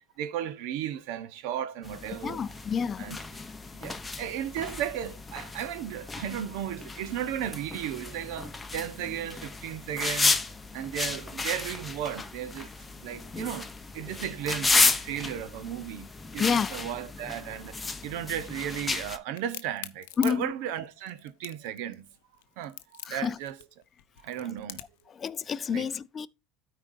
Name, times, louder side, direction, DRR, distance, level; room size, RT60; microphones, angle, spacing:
voice 1, 0.2-2.4 3.0-3.2 3.7-10.4 10.7-12.7 13.0-22.1 22.6-23.6 24.2-24.8 25.7-25.9, right 10 dB, 75° right, 1.0 m, -35 dB
sound 1, 1.8-19.2, left 3 dB, 15° left, 0.9 m, -32 dB
voice 2, 2.2-3.2 14.0-14.2 16.4-16.8 20.2-20.5 23.1-23.4 24.4-24.5 25.1-26.3, left 6 dB, 30° left, 0.5 m, -29 dB
Crack, 19.4-25.1, left 15 dB, 90° left, 0.7 m, -43 dB
13.0 x 4.7 x 2.7 m
supercardioid pair, 115°, 0 cm